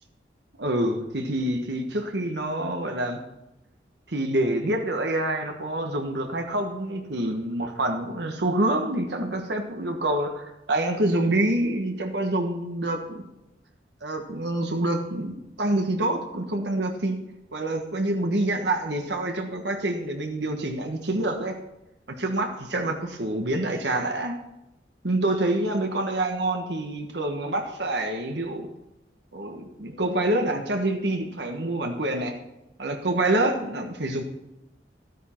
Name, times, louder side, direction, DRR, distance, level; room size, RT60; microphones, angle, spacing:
voice 1, 0.6-3.2 4.1-13.2 14.0-17.1 17.5-21.5 22.2-24.3 25.0-28.7 29.3-32.3 32.8-34.2, right 1 dB, 80° right, 3 dB, 1.3 m, -26 dB
13.0 x 9.2 x 4.5 m, 0.92 s
head